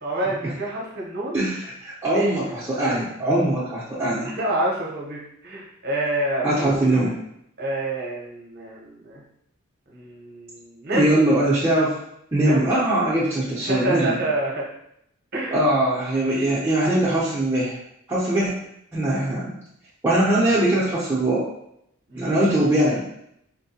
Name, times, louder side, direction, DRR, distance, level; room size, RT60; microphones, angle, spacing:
voice 1, 0.0-1.4 2.1-2.8 3.3-3.4 4.2-6.9 7.6-9.2 9.9-11.2 12.4-12.7 13.7-14.7 15.3-15.5 18.3-18.5 22.1-22.4, right 1 dB, 45° right, -2 dB, 0.8 m, -28 dB
voice 2, 1.3-4.3 6.4-7.1 10.9-11.9 12.3-14.2 15.5-17.8 18.1-18.5 18.9-19.5 20.0-21.4 22.1-23.0, right 1 dB, 15° right, -9 dB, 0.6 m, -21 dB
4.5 x 2.1 x 2.8 m, 0.75 s
head